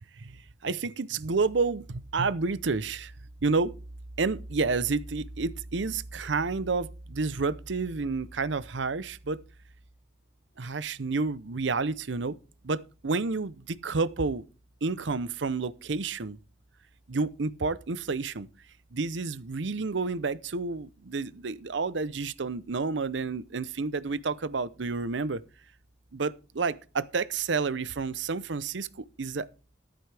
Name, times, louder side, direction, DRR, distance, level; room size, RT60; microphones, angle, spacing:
voice 1, 0.2-3.1 3.4-3.7 4.2-9.4 10.6-12.4 12.6-14.4 14.8-16.4 17.1-18.5 18.9-25.4 26.1-29.5, right 4 dB, 70° right, 0.7 m, -30 dB
14.0 x 11.5 x 3.4 m
head